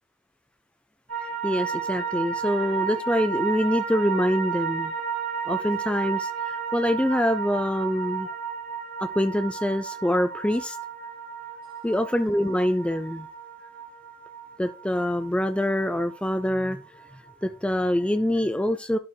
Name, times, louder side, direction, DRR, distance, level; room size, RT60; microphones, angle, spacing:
sound 1, 1.1-17.4 17.7-17.8, right 7 dB, 80° right, 3.3 m, -33 dB
voice 1, 1.4-4.9 5.5-8.3 9.0-10.8 11.8-13.3 14.6-16.8 17.4-19.0, left 1 dB, 5° left, 9 dB, 0.3 m, -25 dB
11.5 x 4.3 x 3.3 m, 0.39 s
head